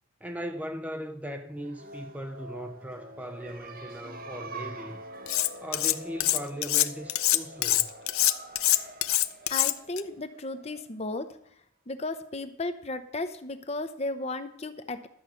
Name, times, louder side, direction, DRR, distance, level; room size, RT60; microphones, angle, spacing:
voice 1, 0.2-5.0 5.6-7.9, equal, 5° right, 0.5 m, -38 dB
sound 1, 1.6-11.1, right 1 dB, 45° right, 0.9 m, -45 dB
Cutlery silverware, 5.3-5.9 6.2-10.0, left 15 dB, 85° left, 0.6 m, -24 dB
voice 2, 9.5-11.4 11.9-15.1, left 2 dB, 30° left, 0.7 m, -34 dB
12.0 x 8.0 x 5.7 m
head